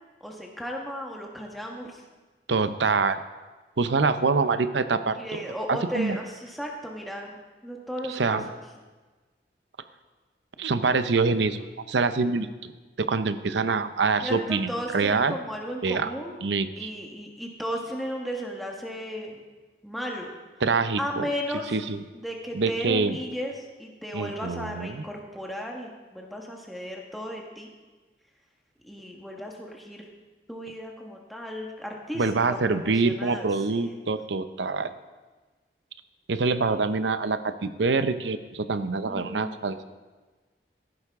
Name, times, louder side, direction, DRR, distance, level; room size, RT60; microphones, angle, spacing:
voice 1, 0.2-2.0 5.1-8.4 14.2-16.4 16.8-19.4 19.8-20.3 21.0-21.8 22.1-27.7 28.8-30.1 30.5-34.0 39.1-39.5, equal, ahead, -1 dB, 1.3 m, -35 dB
voice 2, 2.5-3.2 3.8-5.4 5.7-6.2 8.1-8.4 10.6-12.7 13.0-15.3 15.8-16.1 16.4-16.9 20.6-21.3 21.7-22.0 22.5-23.2 24.1-25.0 32.2-34.9 36.3-39.8, right 4 dB, 85° right, 11 dB, 0.7 m, -25 dB
14.0 x 11.5 x 3.6 m, 1.3 s
head